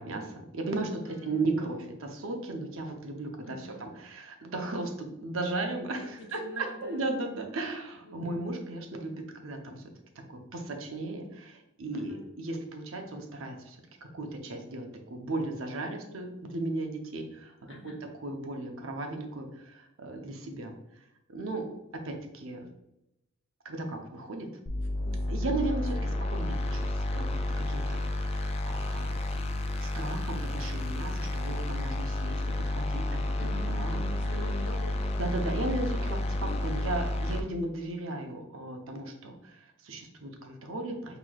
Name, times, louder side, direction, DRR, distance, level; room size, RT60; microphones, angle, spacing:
voice 1, 0.0-9.8 10.3-13.8 14.1-17.9 18.2-20.7 21.3-21.7 21.9-22.6 23.6-24.5 25.3-29.1 29.8-33.5 33.8-34.0 35.2-36.3 36.6-41.2, right 2 dB, 65° right, 3 dB, 0.7 m, -36 dB
voice 2, 1.1-1.5 3.4-3.8 6.2-7.1 8.0-8.5 11.9-12.2 17.7-18.0 25.0-25.5 26.1-26.2 33.3-36.7, left 1 dB, 60° left, 0 dB, 0.9 m, -45 dB
sound 1, 24.7-37.4, left 1 dB, 30° left, 0.3 m, -31 dB
6.0 x 2.9 x 2.3 m, 0.88 s
head